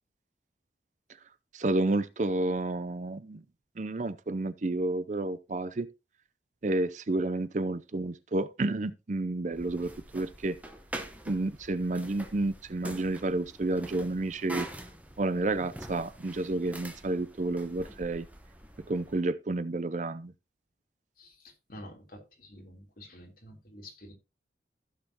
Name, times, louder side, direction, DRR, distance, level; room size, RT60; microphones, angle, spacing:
voice 1, 1.5-3.4 3.8-5.9 6.6-10.6 11.3-14.7 15.2-18.3 18.9-20.3, right 2 dB, 40° right, 0.5 m, -30 dB
sound 1, 9.5-19.2, right 1 dB, 10° right, 1.1 m, -45 dB
voice 2, 21.2-24.1, left 1 dB, 50° left, 3.4 m, -49 dB
15.0 x 6.6 x 2.9 m
head